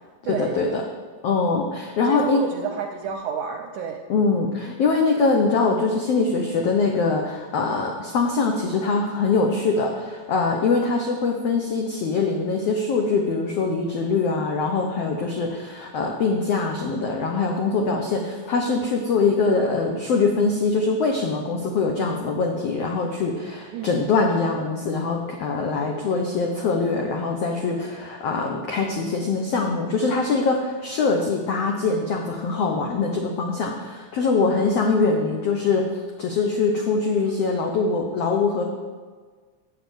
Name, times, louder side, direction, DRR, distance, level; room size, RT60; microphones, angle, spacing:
voice 1, 0.2-0.8 1.2-2.4 4.1-35.8 36.2-38.6, left 4 dB, 90° left, 2 dB, 1.3 m, -23 dB
voice 2, 2.1-4.0 23.7-24.0, right 7 dB, 75° right, 4 dB, 1.8 m, -30 dB
7.7 x 7.0 x 7.9 m, 1.5 s
omnidirectional pair, 4.2 m